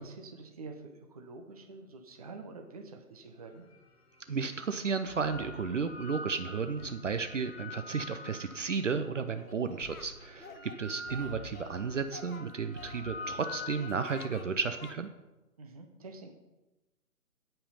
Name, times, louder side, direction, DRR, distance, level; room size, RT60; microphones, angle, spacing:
voice 1, 0.0-3.7 15.6-16.3, right 3 dB, 25° right, 4 dB, 0.9 m, -47 dB
sound 1, 3.7-3.8 4.8-9.1 9.8-14.5, left 2 dB, 40° left, 1.3 m, -46 dB
voice 2, 4.3-15.1, right 5 dB, 50° right, 8 dB, 0.8 m, -33 dB
Singing, 9.4-10.1 10.4-11.8 12.1-13.4 13.8-14.5 14.8-15.0, left 3 dB, 55° left, 1.1 m, -49 dB
16.5 x 5.7 x 5.5 m, 1.1 s
figure-of-eight pair, 150°, 48 cm